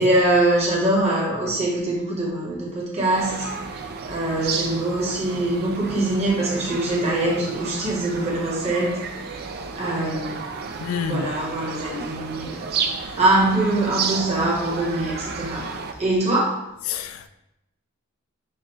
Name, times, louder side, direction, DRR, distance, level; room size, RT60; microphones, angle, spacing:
voice 1, 0.0-3.5 4.0-9.4 9.7-10.4 11.0-15.7 16.0-16.5, right 2 dB, 30° right, 1.3 m, -23 dB
sound 1, 3.1-15.9, right 5 dB, 50° right, 0.4 m, -32 dB
voice 2, 10.8-11.3 16.9-17.3, left 7 dB, 80° left, 0.3 m, -28 dB
6.5 x 2.4 x 3.0 m
head